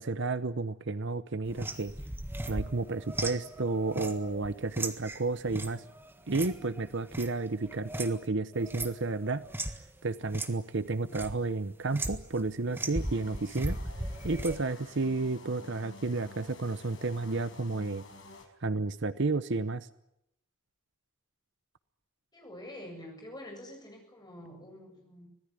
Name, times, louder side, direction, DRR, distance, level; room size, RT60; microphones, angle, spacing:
voice 1, 0.0-1.9 2.5-5.8 6.3-9.4 10.0-13.8 14.2-18.0 18.6-19.9, right 3 dB, 55° right, 13 dB, 0.9 m, -31 dB
sound 1, 1.5-8.3 8.5-9.8 10.3-10.5 10.8-11.4 11.9-12.4 12.7-14.6, right 1 dB, 10° right, 1.6 m, -37 dB
sound 2, 12.9-18.5, left 3 dB, 60° left, 5.2 m, -50 dB
voice 2, 22.3-25.3, left 1 dB, 20° left, 2 dB, 7.5 m, -46 dB
25.0 x 17.5 x 10.0 m, 0.81 s
head